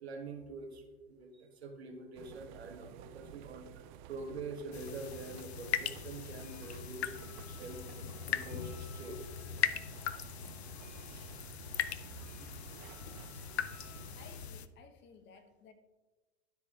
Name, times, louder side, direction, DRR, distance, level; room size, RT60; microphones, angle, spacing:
voice 1, 0.0-8.0 8.3-9.5 11.1-11.3 11.8-14.2, right 3 dB, 85° right, 3 dB, 1.5 m, -47 dB
sound 1, 2.1-14.5, right 11 dB, 50° right, 0.5 m, -52 dB
sound 2, 4.7-14.7, left 9 dB, 90° left, 0.5 m, -40 dB
sound 3, 5.1-14.1, left 2 dB, ahead, 1.4 m, -62 dB
voice 2, 14.1-15.7, left 6 dB, 35° left, 8 dB, 1.1 m, -57 dB
12.5 x 4.5 x 3.7 m, 1.2 s
hypercardioid pair, 100°, 31 cm